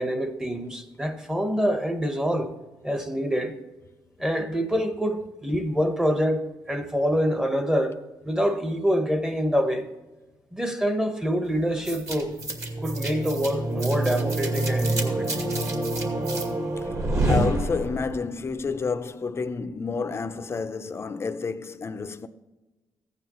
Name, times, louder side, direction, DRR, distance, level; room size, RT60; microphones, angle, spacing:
voice 1, 0.0-2.5 2.8-3.5 4.2-8.0 8.2-9.9 10.5-12.4 12.8-15.4, equal, 5° right, 1.1 m, -26 dB
sound 1, 11.9-18.2, right 2 dB, 40° right, 2.2 m, -27 dB
voice 2, 17.3-22.3, left 4 dB, 30° left, 0.7 m, -30 dB
15.0 x 9.3 x 3.1 m
cardioid pair, 115°, 8 cm